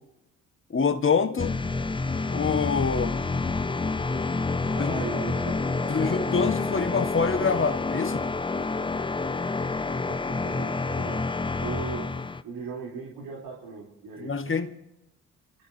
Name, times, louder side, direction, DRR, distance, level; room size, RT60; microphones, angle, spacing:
voice 1, 0.7-1.6 2.3-3.2 4.8-5.0 5.9-8.3 14.2-14.7, left 5 dB, 30° left, 8 dB, 1.6 m, -26 dB
sound 1, 1.4-12.4, left 3 dB, 15° left, 0.6 m, -28 dB
voice 2, 4.7-5.5 5.8-6.1 10.1-11.2 11.6-14.3, right 5 dB, 65° right, -3 dB, 3.6 m, -38 dB
30.0 x 13.5 x 2.8 m, 0.88 s
hypercardioid pair, 45°, 39 cm